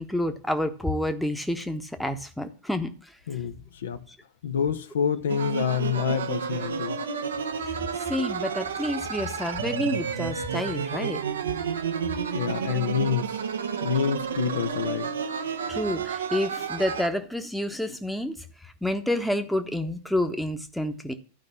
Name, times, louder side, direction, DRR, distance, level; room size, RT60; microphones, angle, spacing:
voice 1, 0.0-2.9 7.9-11.2 15.7-18.3 18.8-21.1, left 1 dB, ahead, 1.1 m, -29 dB
voice 2, 3.3-4.0 4.4-7.0 12.3-13.4 13.8-15.1, left 8 dB, 65° left, 0.9 m, -27 dB
sound 1, 5.3-17.1, right 6 dB, 65° right, 0.9 m, -31 dB
12.0 x 5.3 x 7.1 m
figure-of-eight pair, 90°, 0 cm